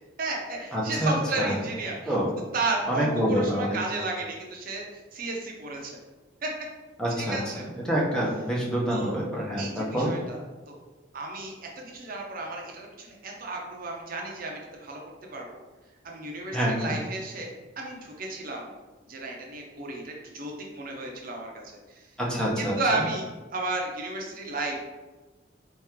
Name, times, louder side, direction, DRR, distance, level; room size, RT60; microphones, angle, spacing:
voice 1, 0.2-2.1 2.5-5.9 6.4-6.5 7.2-7.6 8.9-9.1 9.6-10.4 10.7-10.8 11.1-15.0 15.3-15.5 16.0-18.7 19.1-21.5 21.9-22.0 22.6-24.8, right 2 dB, 50° right, 0 dB, 0.7 m, -33 dB
voice 2, 0.7-1.6 2.1-2.3 2.9-3.8 7.0-7.4 7.8-10.1 16.5-16.9 22.2-22.8, equal, 5° left, -5 dB, 0.8 m, -26 dB
4.5 x 3.0 x 3.6 m, 1.2 s
head